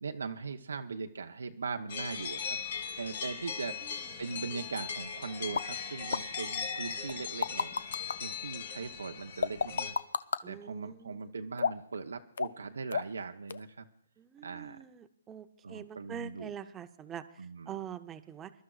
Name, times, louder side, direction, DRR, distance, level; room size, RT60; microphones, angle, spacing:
voice 1, 0.0-2.6 2.9-7.7 8.2-10.0 10.5-13.9 14.4-14.8 15.6-16.5 17.4-17.8, right 4 dB, 90° right, 5 dB, 0.7 m, -40 dB
sound 1, 1.9-9.9, left 6 dB, 60° left, 1.9 m, -39 dB
sound 2, 5.6-5.7 6.1-6.2 7.1-8.2 9.4-10.4 11.6-12.0 12.4-12.6 12.9-13.2 13.5-13.6, left 6 dB, 75° left, 0.4 m, -31 dB
voice 2, 10.4-11.3 14.2-18.5, right 9 dB, 15° right, 10 dB, 0.6 m, -45 dB
25.5 x 12.0 x 2.4 m, 0.65 s
hypercardioid pair, 150°, 0 cm